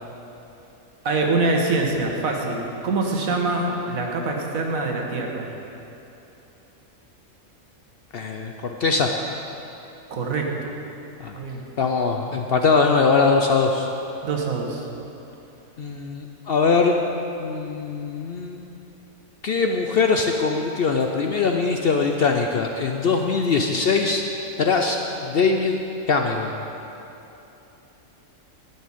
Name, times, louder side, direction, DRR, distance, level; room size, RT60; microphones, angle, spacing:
voice 1, 1.0-5.5 10.1-10.7 11.3-11.6 14.2-14.9, right 3 dB, 75° right, 1 dB, 1.6 m, -24 dB
voice 2, 8.1-9.1 11.2-11.4 11.8-13.9 15.8-17.0 17.4-18.6 19.4-24.2 24.6-25.0 25.2-25.8 26.1-26.6, left 4 dB, 60° left, 3 dB, 0.6 m, -21 dB
11.0 x 5.6 x 8.5 m, 2.9 s
omnidirectional pair, 1.5 m